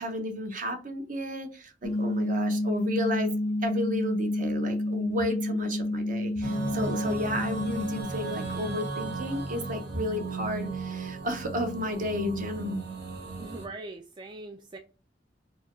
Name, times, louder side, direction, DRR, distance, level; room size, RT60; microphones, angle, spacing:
voice 1, 0.0-3.3 3.6-12.9, left 1 dB, 45° right, 0.8 m, -32 dB
sound 1, 1.8-8.0, left 1 dB, 40° left, 0.5 m, -29 dB
sound 2, 6.4-13.7, right 4 dB, 60° right, 1.3 m, -36 dB
voice 2, 13.4-14.8, right 2 dB, 25° right, 0.3 m, -41 dB
4.2 x 2.3 x 3.0 m
head